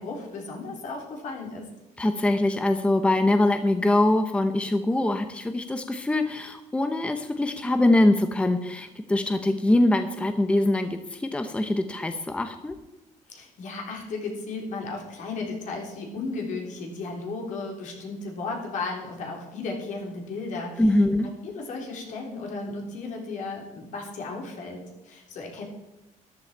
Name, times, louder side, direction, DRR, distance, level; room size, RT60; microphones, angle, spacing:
voice 1, 0.0-1.7 13.3-20.9 21.2-25.6, left 3 dB, 65° left, 0 dB, 3.9 m, -35 dB
voice 2, 2.0-12.8 20.8-21.3, left 1 dB, 10° left, 8 dB, 0.7 m, -23 dB
13.5 x 12.0 x 4.5 m, 0.98 s
cardioid pair, 155°, 14 cm